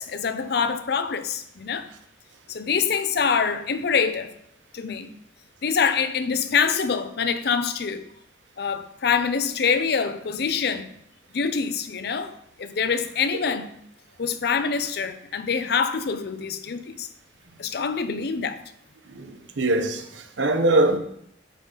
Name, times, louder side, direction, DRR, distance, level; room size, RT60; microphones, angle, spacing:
voice 1, 0.0-1.9 2.5-4.3 4.7-5.1 5.6-8.0 8.6-10.9 11.3-13.7 14.2-17.1 17.6-18.6, left 6 dB, 60° left, 0.5 m, -25 dB
voice 2, 19.1-21.0, right 2 dB, 85° right, 0.8 m, -22 dB
9.2 x 4.0 x 3.8 m
head